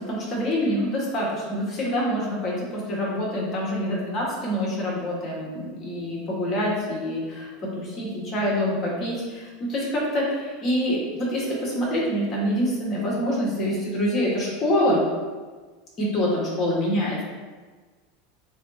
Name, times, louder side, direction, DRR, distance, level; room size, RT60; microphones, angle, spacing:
voice 1, 0.0-15.1 16.0-17.2, equal, 35° left, -4 dB, 1.4 m, -26 dB
7.1 x 2.4 x 2.7 m, 1.4 s
supercardioid pair, 130°, 0 cm